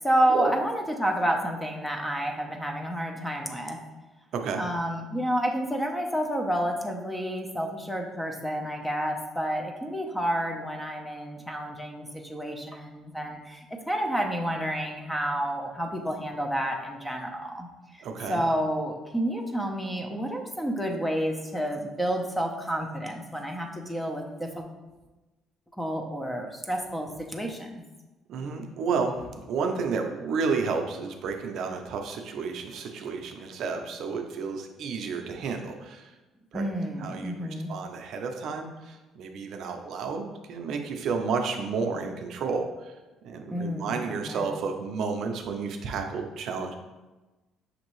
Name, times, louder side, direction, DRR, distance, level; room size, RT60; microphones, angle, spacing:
voice 1, 0.0-3.8 4.6-17.7 18.3-24.6 25.8-27.8 36.5-37.7 43.5-44.5, right 1 dB, 5° left, 2 dB, 0.6 m, -30 dB
voice 2, 18.0-18.4 28.3-36.1 36.5-36.6 37.0-42.7 43.2-46.7, right 5 dB, 65° right, 4 dB, 0.5 m, -31 dB
5.8 x 2.6 x 3.1 m, 1.1 s
cardioid pair, 110°, 0 cm